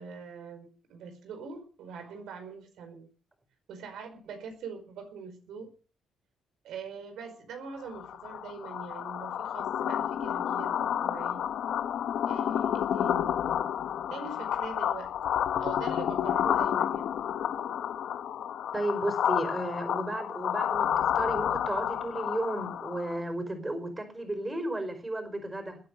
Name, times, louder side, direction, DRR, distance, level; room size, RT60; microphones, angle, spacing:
voice 1, 0.0-3.1 3.7-5.7 6.6-11.4 12.3-13.3 14.1-15.1 15.6-17.1, right 5 dB, 80° right, 6 dB, 5.0 m, -43 dB
sound 1, 7.9-23.2, left 9 dB, 70° left, 1.0 m, -30 dB
voice 2, 18.7-25.8, right 1 dB, 15° right, 8 dB, 5.2 m, -33 dB
20.5 x 8.9 x 6.7 m, 0.39 s
cardioid pair, 90°, 0 cm